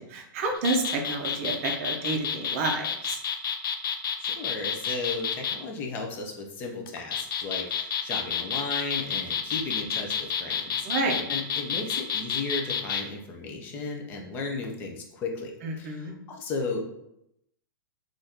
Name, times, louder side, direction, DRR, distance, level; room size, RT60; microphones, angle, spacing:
voice 1, 0.0-3.2 10.8-11.2 15.6-16.1, right 3 dB, 40° right, 2 dB, 0.5 m, -29 dB
sound 1, 0.5-5.6 6.9-13.0, left 7 dB, 85° left, 0.4 m, -29 dB
voice 2, 4.2-10.9 11.3-16.9, left 3 dB, 15° left, 2 dB, 0.3 m, -35 dB
2.7 x 2.3 x 3.4 m, 0.81 s
supercardioid pair, 165°, 11 cm